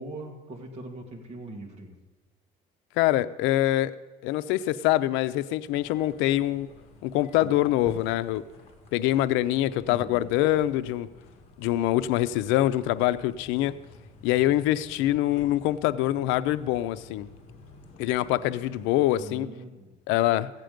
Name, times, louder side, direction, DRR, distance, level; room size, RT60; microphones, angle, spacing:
voice 1, 0.0-1.9 9.9-10.3 19.2-19.9, right 2 dB, 35° right, 2 dB, 2.0 m, -41 dB
voice 2, 3.0-3.9 4.2-6.7 7.0-8.4 8.9-11.1 11.6-13.8 14.2-17.3 18.0-19.5 20.1-20.5, left 14 dB, 85° left, 14 dB, 0.5 m, -24 dB
sound 1, 5.6-19.3, left 2 dB, 30° left, 2.1 m, -49 dB
15.0 x 9.1 x 5.1 m, 1.2 s
cardioid pair, 150°, 19 cm